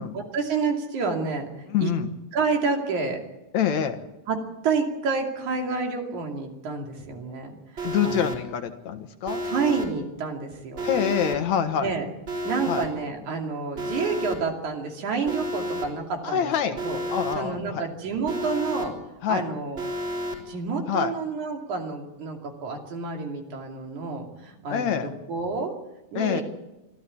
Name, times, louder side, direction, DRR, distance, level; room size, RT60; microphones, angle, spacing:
voice 1, 0.1-1.5 1.8-1.9 2.3-3.2 4.3-4.4 4.6-7.6 8.0-8.3 9.4-10.9 11.8-12.1 12.4-16.5 16.8-17.0 17.4-18.9 19.3-19.8 20.5-25.7 26.1-26.4, right 4 dB, 75° right, 2 dB, 4.1 m, -29 dB
voice 2, 1.7-2.1 3.5-4.0 7.8-9.4 10.8-11.9 12.7-12.8 16.2-16.8 17.1-17.9 19.2-19.4 20.9-21.1 24.7-25.1 26.1-26.4, left 8 dB, 70° left, 8 dB, 2.6 m, -26 dB
Alarm, 7.8-8.4 9.3-9.9 10.8-11.4 12.3-12.9 13.8-14.4 15.3-15.9 16.8-17.4 18.3-18.9 19.8-20.4, equal, 40° right, 4.7 m, -31 dB
24.5 x 13.5 x 8.4 m, 0.96 s
omnidirectional pair, 3.4 m